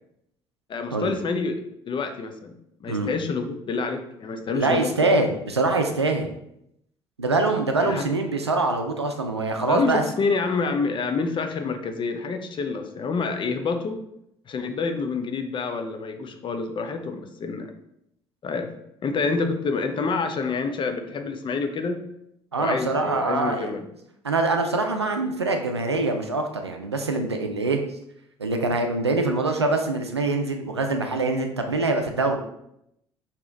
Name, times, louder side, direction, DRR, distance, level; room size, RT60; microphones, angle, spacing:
voice 1, 0.7-5.2 7.8-8.1 9.7-14.0 14.5-17.7 18.4-18.7 19.0-22.0 22.6-23.9, left 4 dB, 35° left, 7 dB, 0.6 m, -28 dB
voice 2, 4.5-6.3 7.2-10.0 22.5-23.7 24.2-27.8 28.4-32.4, right 3 dB, 90° right, 5 dB, 0.4 m, -24 dB
4.8 x 2.9 x 3.7 m, 0.78 s
figure-of-eight pair, 50°, 13 cm